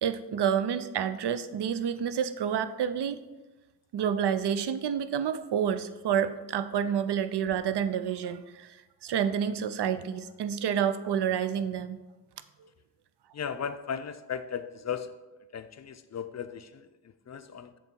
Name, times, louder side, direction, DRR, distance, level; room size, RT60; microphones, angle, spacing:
voice 1, 0.0-3.2 3.9-8.8 9.0-12.0, right 8 dB, 65° right, 12 dB, 0.5 m, -29 dB
voice 2, 13.3-15.2 15.5-17.8, left 7 dB, 40° left, 11 dB, 0.5 m, -37 dB
7.1 x 3.1 x 4.4 m, 1.1 s
cardioid pair, 40°, 44 cm